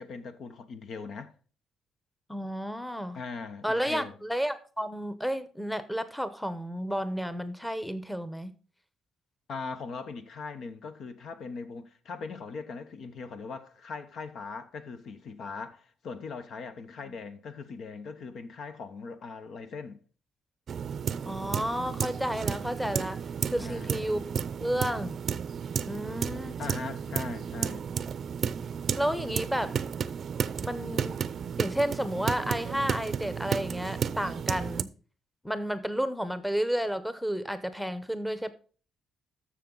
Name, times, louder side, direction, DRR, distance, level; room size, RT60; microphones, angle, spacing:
voice 1, 0.0-1.3 3.1-4.1 9.5-20.0 23.6-24.2 26.6-27.9, left 4 dB, 65° left, 1.0 m, -40 dB
voice 2, 2.3-3.2 3.6-8.5 17.0-17.1 21.2-23.2 23.5-24.2 24.6-25.2 25.9-26.6 29.0-29.7 30.6-31.2 31.6-34.9 35.4-38.5, equal, ahead, 0.9 m, -31 dB
sound 1, 20.7-34.8, right 7 dB, 55° right, 0.5 m, -33 dB
13.0 x 6.5 x 3.9 m
cardioid pair, 90°, 0 cm